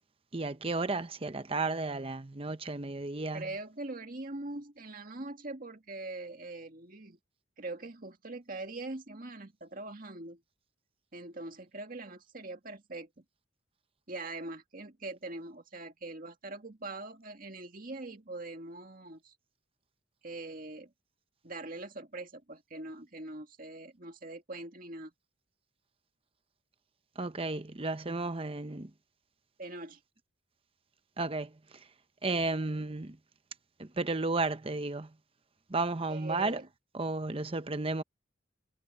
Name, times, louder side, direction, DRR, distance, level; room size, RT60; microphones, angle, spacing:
voice 1, 0.3-3.5 27.2-28.9 31.2-31.5 32.2-33.2 33.8-35.1 35.7-36.6 36.9-38.0, right 3 dB, 30° right, 0.9 m, -33 dB
voice 2, 3.3-7.2 7.6-10.4 11.1-13.2 14.1-19.4 20.2-20.9 21.4-25.1 29.6-30.0 36.1-36.7, right 2 dB, 45° right, 2.0 m, -42 dB
head